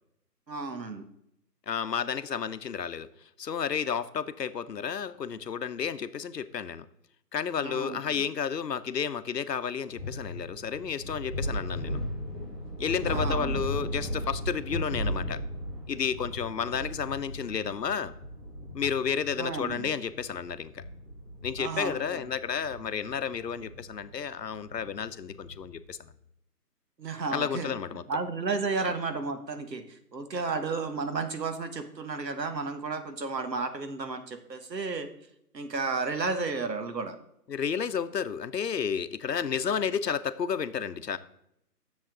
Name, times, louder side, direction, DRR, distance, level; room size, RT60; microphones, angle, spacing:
voice 1, 0.5-1.1 7.6-8.0 13.0-13.7 19.4-19.9 21.6-22.3 27.0-27.7 28.1-35.1 35.5-37.1, right 4 dB, 85° right, 8 dB, 1.5 m, -33 dB
voice 2, 1.7-3.1 3.4-6.9 7.3-12.0 12.8-15.4 15.9-18.1 18.7-20.8 21.4-26.0 27.3-28.0 37.5-41.2, left 7 dB, 80° left, 13 dB, 0.9 m, -31 dB
Scary Thunder, 9.9-25.7, equal, 30° right, 2.9 m, -37 dB
10.5 x 7.1 x 3.8 m, 0.77 s
hypercardioid pair, 165°, 49 cm